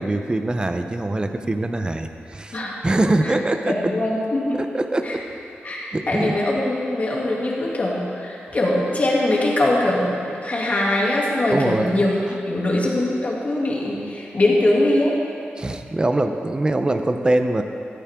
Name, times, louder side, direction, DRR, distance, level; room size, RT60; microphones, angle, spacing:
voice 1, 0.0-2.6 2.8-3.8 4.6-5.2 5.9-6.4 11.5-12.0 15.6-17.6, right 2 dB, 20° right, 6 dB, 0.8 m, -23 dB
voice 2, 3.7-4.6 5.0-5.2 5.6-12.2 12.5-15.2, left 1 dB, 40° left, -4 dB, 2.7 m, -22 dB
16.0 x 14.0 x 3.8 m, 2.6 s
wide cardioid pair, 110°, 4 cm